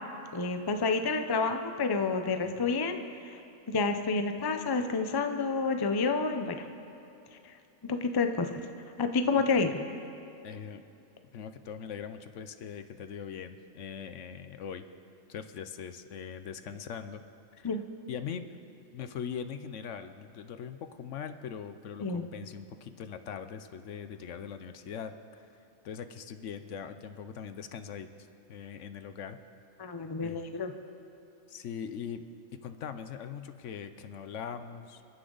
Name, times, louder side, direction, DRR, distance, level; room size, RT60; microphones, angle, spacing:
voice 1, 0.3-3.4 3.7-6.7 7.4-7.6 7.8-8.7 9.0-9.8 17.6-17.8 22.0-22.3 29.8-30.7, left 4 dB, 25° left, 7 dB, 0.5 m, -29 dB
voice 2, 10.4-10.8 11.3-14.8 15.3-17.2 17.5-17.7 18.1-18.5 18.9-29.4 30.2-30.4 31.5-32.2 32.5-35.0, left 7 dB, 65° left, 10 dB, 0.9 m, -41 dB
29.5 x 9.9 x 3.9 m, 2.8 s
omnidirectional pair, 1.4 m